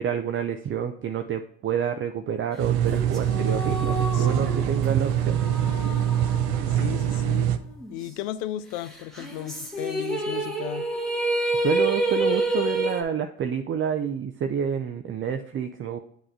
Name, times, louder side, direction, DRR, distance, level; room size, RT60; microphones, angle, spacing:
voice 1, 0.0-5.4 11.5-16.0, right 7 dB, 40° right, 0.5 m, -28 dB
sound 1, 2.6-7.6, right 10 dB, 85° right, 0.5 m, -24 dB
sound 2, 2.9-7.5 7.8-7.9 9.2-13.0, right 1 dB, ahead, 1.6 m, -29 dB
voice 2, 4.1-4.6 6.7-7.6 7.9-10.9, left 13 dB, 80° left, 0.5 m, -35 dB
7.7 x 3.0 x 4.7 m
hypercardioid pair, 60°, 33 cm